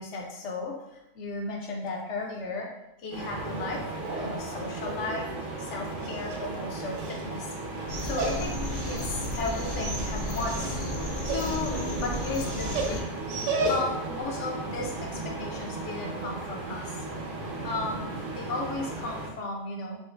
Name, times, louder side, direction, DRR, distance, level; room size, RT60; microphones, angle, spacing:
voice 1, 0.0-2.7 3.0-3.8 4.1-5.3 5.6-7.5 8.0-8.5 8.9-10.8 11.2-13.1 13.6-17.1 17.6-20.0, left 3 dB, 70° left, 0 dB, 1.0 m, -35 dB
sound 1, 3.1-19.3, right 2 dB, 45° right, 0.8 m, -36 dB
Dog, 5.8-14.1, right 2 dB, 90° right, 1.0 m, -35 dB
sound 2, 7.9-13.0, left 1 dB, 50° left, 0.5 m, -34 dB
5.0 x 2.1 x 2.4 m, 0.88 s
omnidirectional pair, 1.3 m